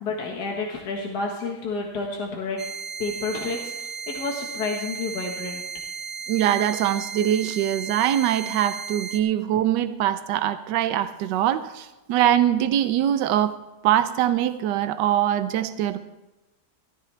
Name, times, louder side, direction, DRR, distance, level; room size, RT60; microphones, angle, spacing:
voice 1, 0.0-2.6 3.0-5.6, left 3 dB, 70° left, 0 dB, 2.0 m, -30 dB
sound 1, 2.6-9.2, right 6 dB, 50° right, 0.6 m, -35 dB
voice 2, 6.3-13.6 13.8-16.0, right 11 dB, 85° right, 12 dB, 1.3 m, -23 dB
14.0 x 13.5 x 3.3 m, 1.0 s
omnidirectional pair, 1.9 m